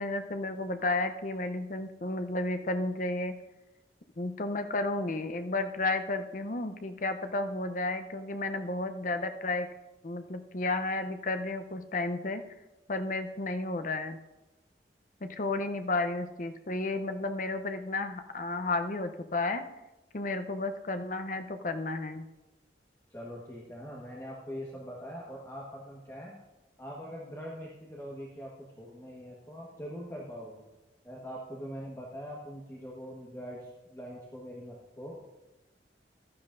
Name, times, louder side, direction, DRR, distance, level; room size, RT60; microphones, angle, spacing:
voice 1, 0.0-3.3 4.2-9.7 10.0-12.4 12.9-14.2 15.2-19.6 20.1-22.3, left 2 dB, 45° left, 8 dB, 0.7 m, -32 dB
voice 2, 23.1-26.4 26.8-30.7 31.0-35.2, equal, 15° left, -5 dB, 1.4 m, -43 dB
15.5 x 12.0 x 2.6 m, 1.0 s
head